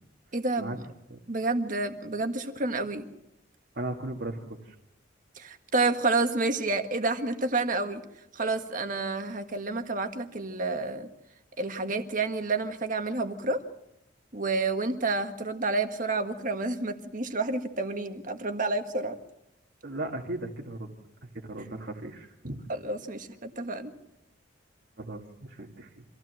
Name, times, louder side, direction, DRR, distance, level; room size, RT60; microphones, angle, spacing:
voice 1, 0.3-0.8 1.3-3.1 5.3-8.0 8.3-11.1 11.6-13.6 14.3-19.2 22.7-23.9, right 3 dB, 40° right, 7 dB, 1.6 m, -29 dB
voice 2, 3.7-4.7 19.8-20.9 21.2-22.6 25.0-26.0, right 2 dB, 60° right, -2 dB, 1.9 m, -37 dB
25.5 x 16.0 x 7.7 m, 0.88 s
head